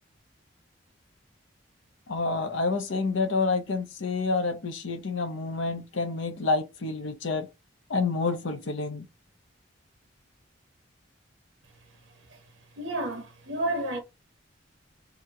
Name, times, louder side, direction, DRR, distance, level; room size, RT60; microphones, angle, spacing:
voice 1, 2.1-7.5 7.9-9.1, left 3 dB, 80° left, 0.6 m, -28 dB
voice 2, 12.8-14.0, right 1 dB, 85° right, 0.9 m, -31 dB
2.9 x 2.1 x 3.5 m
head